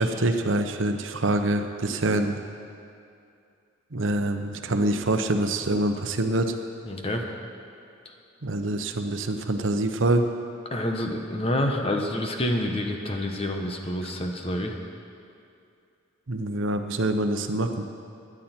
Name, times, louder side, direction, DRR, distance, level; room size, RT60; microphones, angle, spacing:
voice 1, 0.0-2.4 3.9-6.6 8.4-10.3 16.3-17.8, right 2 dB, 85° right, 6 dB, 0.9 m, -25 dB
voice 2, 6.9-7.3 10.7-14.8, left 1 dB, 30° left, 3 dB, 1.2 m, -28 dB
17.0 x 11.0 x 4.5 m, 2.5 s
head